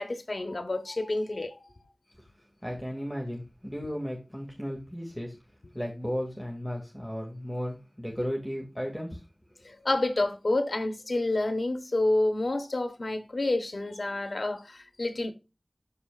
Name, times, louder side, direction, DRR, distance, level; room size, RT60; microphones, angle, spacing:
voice 1, 0.0-1.6 9.6-15.3, left 2 dB, 85° left, 1.1 m, -29 dB
voice 2, 2.6-5.4 5.7-9.2, equal, 5° left, 2.1 m, -35 dB
12.5 x 4.3 x 2.4 m
wide cardioid pair, 50°, 0 cm